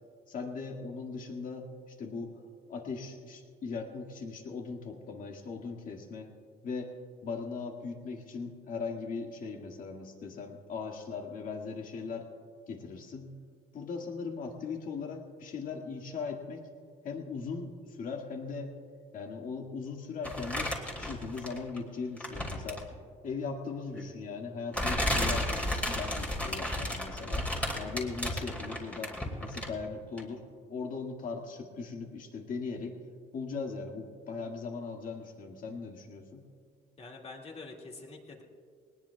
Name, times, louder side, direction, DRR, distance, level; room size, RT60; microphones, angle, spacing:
voice 1, 0.3-1.7 2.0-2.3 2.7-6.3 6.6-6.9 7.2-12.3 12.7-13.3 13.7-16.7 17.0-18.7 19.1-22.8 23.2-27.5 27.8-30.4 30.7-33.0 33.3-36.5, left 4 dB, 55° left, 2 dB, 1.9 m, -39 dB
sound 1, 20.2-21.8 22.2-22.9 23.9-24.0 24.7-29.9 30.2-30.3, left 1 dB, 10° left, 2.4 m, -33 dB
voice 2, 37.0-38.4, left 3 dB, 35° left, 0 dB, 2.2 m, -46 dB
20.0 x 19.5 x 2.4 m, 2.2 s
cardioid pair, 110°, 17 cm